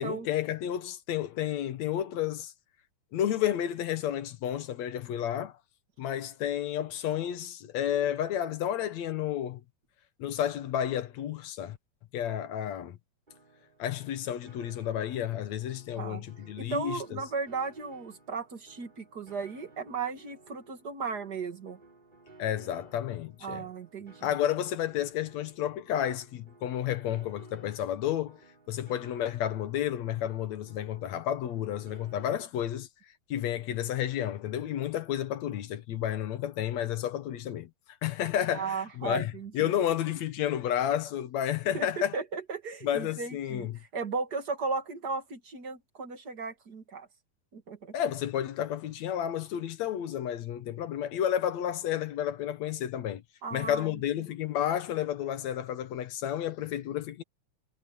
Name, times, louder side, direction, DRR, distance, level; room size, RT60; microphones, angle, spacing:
voice 1, 0.0-2.5 3.1-5.5 6.0-9.6 10.2-11.8 12.1-13.0 13.8-17.2 22.4-23.7 24.2-28.4 28.7-32.9 33.3-37.7 38.0-42.2 42.8-43.8 47.9-53.2 53.5-57.2, left 10 dB, 75° left, 2.4 m, -31 dB
Piano, 13.3-32.4, right 3 dB, 15° right, 4.2 m, -57 dB
voice 2, 16.6-21.8 23.4-24.3 38.5-39.7 41.7-41.9 42.1-43.7 43.9-47.1 47.5-47.9 53.4-53.9, right 4 dB, 35° right, 2.3 m, -36 dB
omnidirectional pair, 3.3 m